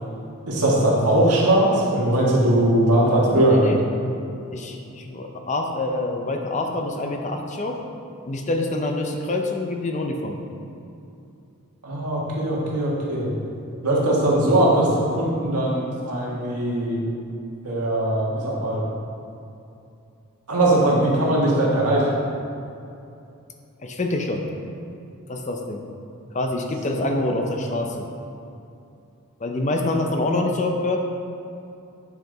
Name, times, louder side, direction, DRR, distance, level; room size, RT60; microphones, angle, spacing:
voice 1, 0.5-3.7 11.8-13.3 13.8-17.1 17.6-18.9 20.5-22.0 26.9-27.5, right 1 dB, 90° right, -4 dB, 1.6 m, -20 dB
voice 2, 3.3-3.8 4.5-7.8 8.2-10.4 23.8-24.4 25.3-25.8 26.3-28.1 29.4-31.0, left 2 dB, 30° left, 3 dB, 0.6 m, -26 dB
9.1 x 5.0 x 3.9 m, 2.7 s
head